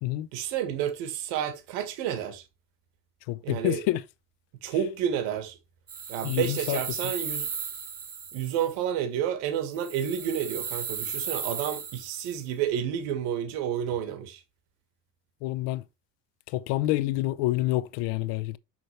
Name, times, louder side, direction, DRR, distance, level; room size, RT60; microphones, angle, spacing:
voice 1, 0.3-2.4 3.4-3.8 4.6-5.6 6.1-7.5 8.3-14.4, right 9 dB, 90° right, 1.7 m, -30 dB
voice 2, 3.3-4.0 6.2-6.8 15.4-15.8 16.5-18.6, left 16 dB, 75° left, 0.7 m, -27 dB
sound 1, 5.9-8.7 9.7-12.4, right 6 dB, 20° right, 0.9 m, -35 dB
6.7 x 6.1 x 3.1 m
cardioid pair, 170°, 43 cm